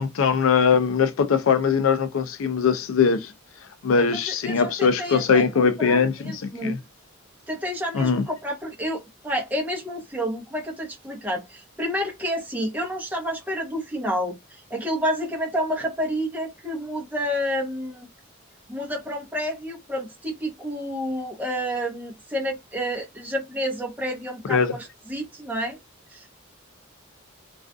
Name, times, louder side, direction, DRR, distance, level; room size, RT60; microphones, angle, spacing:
voice 1, 0.0-3.3 3.8-6.8 7.9-8.2 24.4-24.7, left 6 dB, 80° left, 0.4 m, -21 dB
voice 2, 4.0-6.8 7.5-18.1 18.7-25.8 26.1-26.2, equal, 10° right, 0.8 m, -29 dB
2.4 x 2.4 x 2.3 m
head